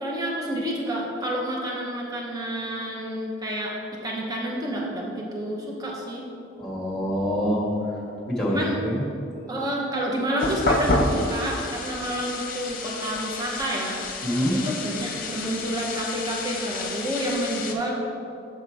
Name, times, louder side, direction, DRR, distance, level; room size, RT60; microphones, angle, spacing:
voice 1, 0.0-3.7 4.0-6.3 8.5-8.8 9.5-14.0 14.5-18.0, right 1 dB, 20° right, -2 dB, 0.9 m, -29 dB
voice 2, 6.6-7.7 8.3-9.0 14.2-14.6, equal, 5° left, -4 dB, 1.7 m, -25 dB
sound 1, 10.4-17.7, left 2 dB, 45° left, 0.8 m, -29 dB
7.3 x 5.6 x 4.7 m, 2.7 s
head